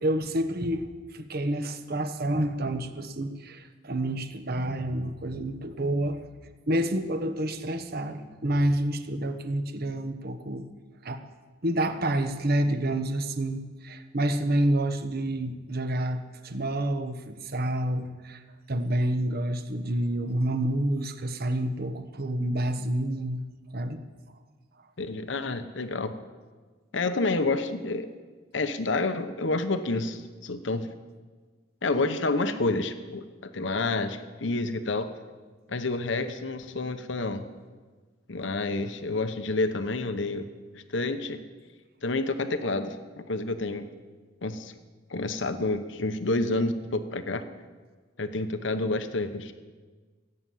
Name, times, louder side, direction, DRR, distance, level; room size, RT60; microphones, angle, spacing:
voice 1, 0.0-6.2 6.7-10.6 11.0-11.2 11.6-18.4 18.7-23.5 23.7-24.0, right 1 dB, 50° right, 8 dB, 1.1 m, -28 dB
voice 2, 25.0-26.1 26.9-28.1 28.5-30.9 31.8-35.1 35.7-37.4 38.3-40.5 40.7-41.4 42.0-43.9 44.4-44.7 45.1-47.5 48.2-49.5, left 2 dB, 65° left, 9 dB, 0.9 m, -29 dB
16.5 x 8.7 x 7.7 m, 1.4 s
head